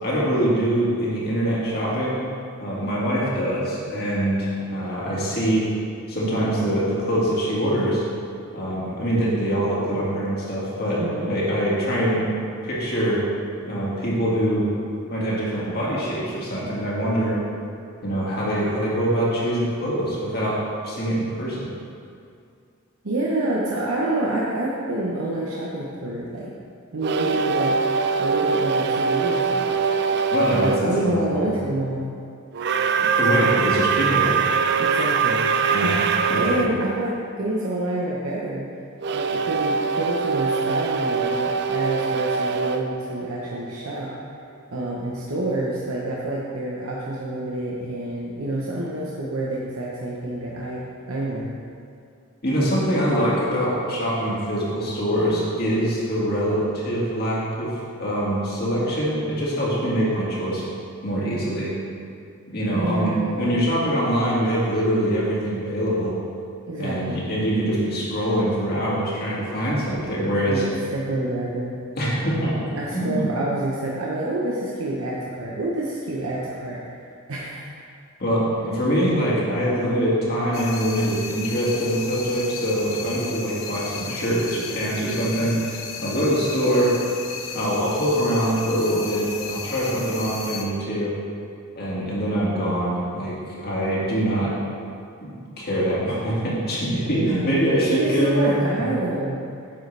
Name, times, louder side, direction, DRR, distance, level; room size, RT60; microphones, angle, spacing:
voice 1, 0.0-2.2 2.6-5.7 6.1-8.0 8.5-12.3 12.6-13.2 13.6-14.7 15.1-17.4 18.0-20.6 20.8-21.7 30.3-31.6 33.0-34.4 35.7-36.0 36.3-36.6 52.4-60.6 61.0-61.7 62.5-66.1 66.8-70.6 72.0-72.5 72.9-73.2 78.2-86.9 87.5-91.1 91.8-94.5 95.2-98.9, equal, 50° left, -6 dB, 2.1 m, -24 dB
voice 2, 11.0-11.3 23.0-26.5 26.9-27.8 28.2-29.8 30.5-32.1 34.8-38.7 39.1-44.1 44.7-50.8 51.1-51.6 62.7-63.6 66.7-67.2 70.5-71.7 72.8-76.8 77.3-77.7 97.0-99.4, right 1 dB, 85° right, -5 dB, 1.0 m, -27 dB
sound 1, 27.0-30.9 32.5-36.7 39.0-43.9, right 5 dB, 55° right, 0.4 m, -23 dB
sound 2, 80.5-90.7, left 5 dB, 70° left, 0.8 m, -35 dB
9.4 x 6.7 x 3.4 m, 2.4 s
head